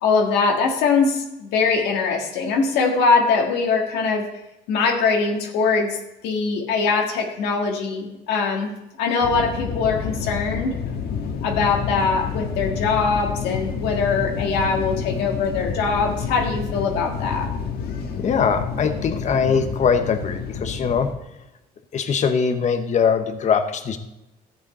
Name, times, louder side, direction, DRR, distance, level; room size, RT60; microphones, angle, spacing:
voice 1, 0.0-4.3 4.7-10.7 11.4-17.5, left 4 dB, 90° left, 1 dB, 1.7 m, -22 dB
sound 1, 9.2-21.1, left 6 dB, 65° left, 1.5 m, -29 dB
voice 2, 18.2-21.1 21.9-24.0, left 6 dB, 45° left, 8 dB, 1.0 m, -21 dB
13.5 x 8.1 x 4.2 m, 0.95 s
cardioid pair, 110°, 17 cm